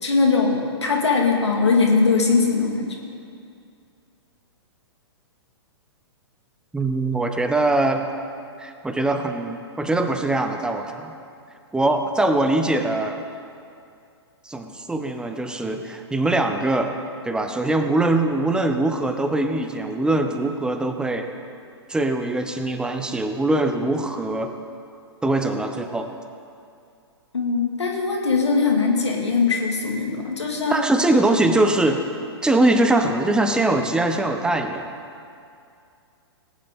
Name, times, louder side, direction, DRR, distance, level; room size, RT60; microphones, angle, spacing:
voice 1, 0.0-3.0 27.3-30.8, left 4 dB, 80° left, 0 dB, 2.2 m, -21 dB
voice 2, 6.7-8.1 8.6-11.1 11.7-13.2 14.4-16.9 17.2-21.3 21.9-24.6 25.2-26.1 30.7-32.0 32.4-34.9, right 2 dB, 5° right, 6 dB, 0.8 m, -22 dB
18.5 x 9.5 x 3.7 m, 2.5 s
figure-of-eight pair, 115°, 14 cm